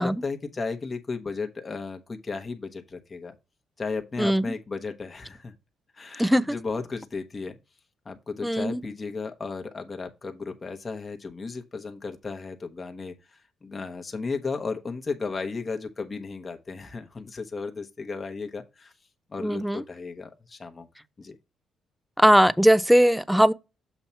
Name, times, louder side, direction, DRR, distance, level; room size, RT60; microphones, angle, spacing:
voice 1, 0.0-3.3 3.8-5.5 5.9-7.6 8.0-18.9 19.3-20.9 21.2-21.4, left 4 dB, 30° left, 1.0 m, -34 dB
voice 2, 8.4-8.8 19.4-19.8 22.2-23.5, equal, ahead, 0.4 m, -19 dB
7.1 x 2.9 x 5.5 m
cardioid pair, 90°, 0 cm